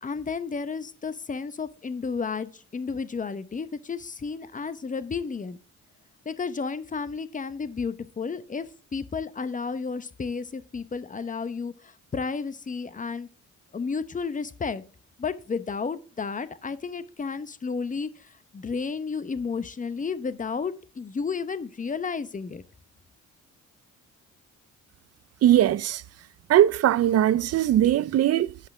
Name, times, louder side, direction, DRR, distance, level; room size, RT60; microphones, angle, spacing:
voice 1, 0.0-5.6 6.3-8.7 8.9-13.3 13.7-14.8 15.2-18.1 18.5-22.6, left 5 dB, 25° left, 0.9 m, -32 dB
voice 2, 25.4-26.0 26.5-28.7, right 12 dB, 55° right, 0.5 m, -20 dB
8.4 x 5.6 x 4.8 m
cardioid pair, 90°, 30 cm